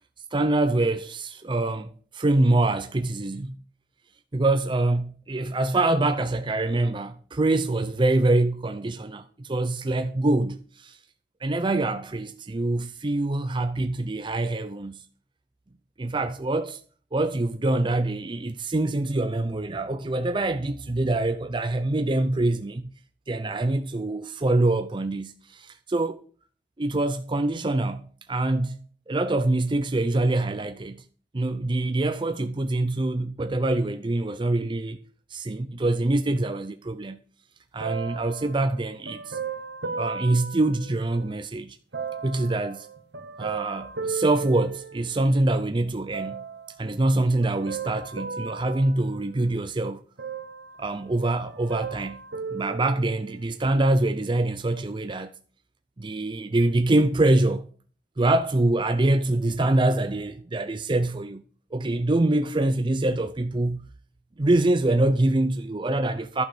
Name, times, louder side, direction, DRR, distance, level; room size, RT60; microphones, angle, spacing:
voice 1, 0.3-3.6 4.3-11.0 11.4-15.0 16.0-16.8 17.1-22.9 23.3-26.2 26.8-31.0 31.3-35.0 35.3-37.2 37.7-39.4 39.9-41.8 42.2-42.9 43.4-46.4 46.8-50.0 50.8-52.2 52.5-55.3 56.0-57.7 58.2-61.4 61.7-63.9 64.4-66.5, right 2 dB, 25° right, 0.5 m, -25 dB
sound 1, 37.8-41.4 41.9-45.4 46.1-46.8 47.4-49.7 50.2-51.2 51.4-53.5 54.2-54.3, right 5 dB, 70° right, 1.1 m, -36 dB
11.5 x 6.4 x 6.7 m
head